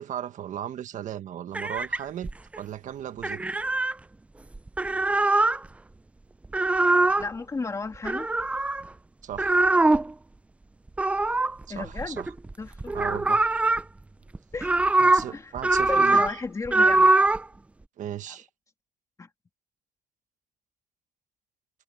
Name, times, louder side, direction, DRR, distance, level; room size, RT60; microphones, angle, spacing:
voice 1, 0.0-2.3 2.6-3.4 9.2-9.6 11.7-12.3 12.9-13.5 15.0-16.4 18.0-18.5, right 10 dB, 40° right, 1.5 m, -36 dB
sound 1, 1.5-2.6 3.2-3.9 4.5-5.6 6.4-7.3 8.1-8.9 9.4-10.1 11.0-12.5 12.8-13.8 14.3-15.3 15.6-16.3 16.7-17.4, right 2 dB, 5° right, 0.4 m, -22 dB
voice 2, 7.2-8.3 11.7-12.2 12.6-12.9 14.5-14.7 15.3-15.5 15.9-17.1 19.2-19.3, left 4 dB, 15° left, 2.3 m, -33 dB
cardioid pair, 155°, 20 cm